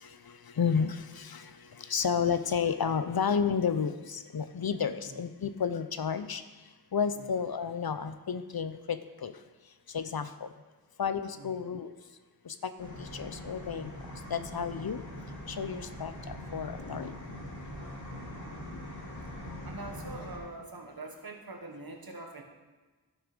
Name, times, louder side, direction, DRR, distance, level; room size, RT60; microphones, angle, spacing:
voice 1, 0.6-1.4 1.9-6.4 6.9-9.3 9.9-10.5 11.0-11.9 12.8-13.9 14.3-15.0 15.5-16.1 16.5-17.1, left 6 dB, 60° left, 11 dB, 0.7 m, -31 dB
sound 1, 12.8-20.4, left 1 dB, 45° left, 2.6 m, -42 dB
voice 2, 18.1-18.4 19.6-22.4, right 2 dB, 60° right, 3 dB, 1.5 m, -44 dB
11.5 x 6.5 x 5.1 m, 1.3 s
wide cardioid pair, 40°, 40 cm